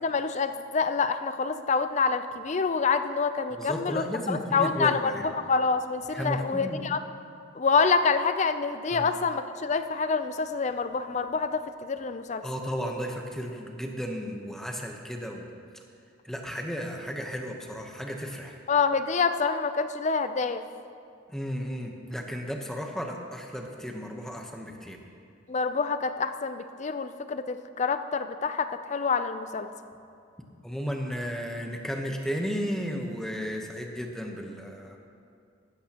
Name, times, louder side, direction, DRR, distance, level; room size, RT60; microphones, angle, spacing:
voice 1, 0.0-7.0 7.5-12.4 18.7-20.6 25.5-29.7, left 5 dB, 35° left, 10 dB, 0.4 m, -27 dB
voice 2, 3.6-5.3 6.1-6.8 8.9-9.1 12.4-15.5 16.2-18.6 21.3-25.0 30.6-35.0, equal, ahead, 2 dB, 0.9 m, -34 dB
15.0 x 12.5 x 2.9 m, 2.4 s
head